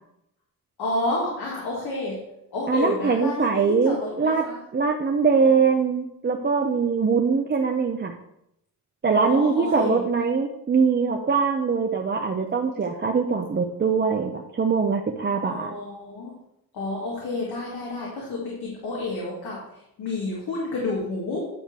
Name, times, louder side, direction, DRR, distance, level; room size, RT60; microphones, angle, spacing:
voice 1, 0.8-2.2 2.5-4.6 5.4-5.5 9.1-10.0 15.4-16.3 16.7-19.6 20.0-21.4, left 2 dB, 85° left, -4 dB, 2.2 m, -30 dB
voice 2, 2.7-4.4 4.7-8.1 9.0-15.7, right 5 dB, 30° right, 2 dB, 0.6 m, -22 dB
9.5 x 3.2 x 6.6 m, 0.80 s
cardioid pair, 105°, 37 cm